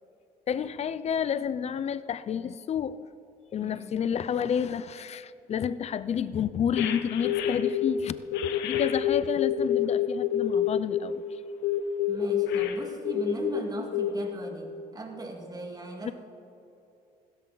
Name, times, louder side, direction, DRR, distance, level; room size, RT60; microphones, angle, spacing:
voice 1, 0.5-3.0 3.5-8.1 8.6-11.4 16.0-16.1, left 8 dB, 40° left, 15 dB, 0.6 m, -30 dB
voice 2, 3.6-4.1 12.1-16.1, right 2 dB, 20° right, 2 dB, 2.1 m, -38 dB
sound 1, 6.8-7.9 8.3-11.0 11.6-13.6 13.9-14.1, left 10 dB, 90° left, 1.0 m, -27 dB
16.0 x 13.5 x 4.0 m, 2.8 s
cardioid pair, 110°, 17 cm